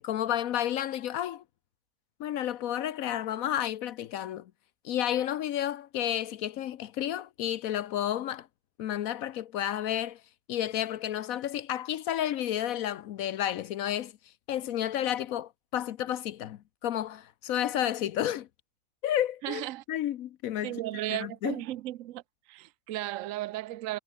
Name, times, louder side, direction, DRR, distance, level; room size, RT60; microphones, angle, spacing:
voice 1, 0.0-1.4 2.2-4.5 4.8-8.5 8.8-10.2 10.5-14.1 14.5-18.5 19.0-20.8 21.1-21.6, left 11 dB, 80° left, 1.1 m, -31 dB
voice 2, 19.4-19.8 20.6-22.2 22.5-24.0, right 15 dB, 70° right, 1.0 m, -35 dB
omnidirectional pair, 1.5 m